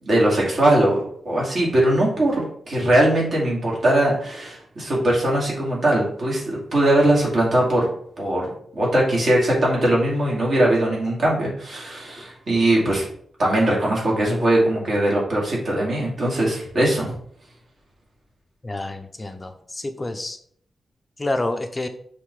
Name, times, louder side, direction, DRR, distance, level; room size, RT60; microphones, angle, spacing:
voice 1, 0.0-7.9 8.2-13.1 13.4-17.2, right 1 dB, 50° right, -4 dB, 2.6 m, -20 dB
voice 2, 18.6-20.4 21.2-21.9, left 2 dB, 20° left, 6 dB, 0.6 m, -28 dB
5.6 x 3.6 x 4.9 m, 0.63 s
wide cardioid pair, 145°, 0 cm